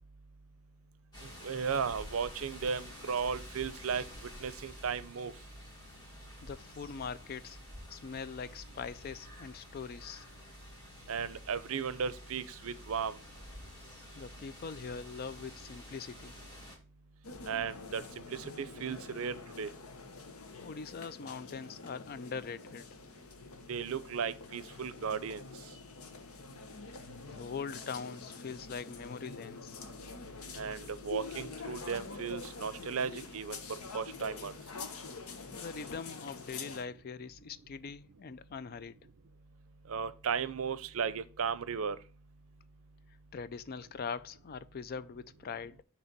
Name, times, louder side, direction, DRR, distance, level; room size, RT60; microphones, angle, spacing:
sound 1, 1.1-16.8, equal, 20° left, 2.0 m, -50 dB
voice 1, 1.4-4.0 4.4-5.3 11.1-13.2 17.5-19.7 23.7-25.4 30.6-33.6 33.9-34.5 39.9-42.0, right 6 dB, 70° right, 0.5 m, -35 dB
voice 2, 6.4-7.6 7.9-10.2 14.2-16.3 20.6-22.9 26.9-29.8 35.5-39.0 43.3-45.8, left 5 dB, 45° left, 0.3 m, -42 dB
sound 2, 17.2-36.8, left 4 dB, 90° left, 1.0 m, -46 dB
6.7 x 3.3 x 5.8 m
head